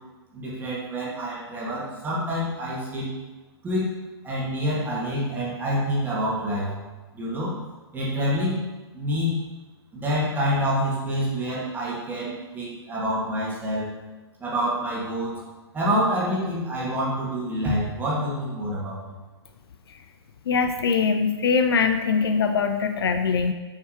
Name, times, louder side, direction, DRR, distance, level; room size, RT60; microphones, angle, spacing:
voice 1, 0.3-3.1 3.6-3.9 4.2-6.7 7.1-7.6 7.9-8.6 8.9-9.4 9.9-13.9 14.4-15.4 15.7-19.2, equal, 15° right, -7 dB, 2.3 m, -27 dB
voice 2, 20.5-23.5, left 5 dB, 60° left, 7 dB, 0.6 m, -22 dB
7.5 x 5.8 x 3.2 m, 1.2 s
figure-of-eight pair, 120°, 14 cm